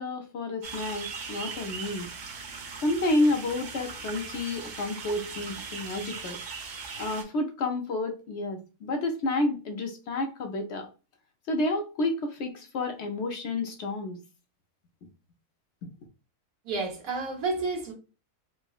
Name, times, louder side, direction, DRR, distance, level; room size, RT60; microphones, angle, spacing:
voice 1, 0.0-2.1 2.8-6.4 7.0-10.9 11.5-14.2, left 2 dB, 65° left, 0.7 m, -30 dB
sound 1, 0.6-7.2, right 5 dB, 55° right, 0.5 m, -39 dB
voice 2, 16.6-17.9, right 3 dB, 75° right, 1.3 m, -30 dB
3.5 x 2.0 x 2.3 m
omnidirectional pair, 1.5 m